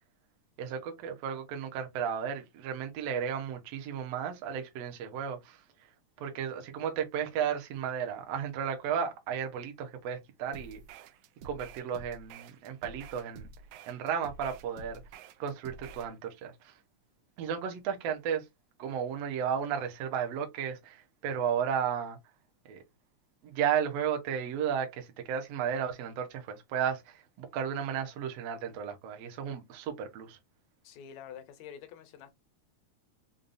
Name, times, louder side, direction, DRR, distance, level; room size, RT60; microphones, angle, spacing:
voice 1, 0.6-5.6 6.2-10.8 11.4-13.5 13.9-15.0 15.4-16.7 17.4-18.5 18.8-22.2 22.7-22.8 23.4-30.4, right 8 dB, 70° right, 1.7 m, -34 dB
sound 1, 10.5-16.1, right 5 dB, 85° right, 1.5 m, -49 dB
voice 2, 30.8-32.3, left 8 dB, 75° left, 1.9 m, -47 dB
5.3 x 2.3 x 2.5 m
omnidirectional pair, 3.4 m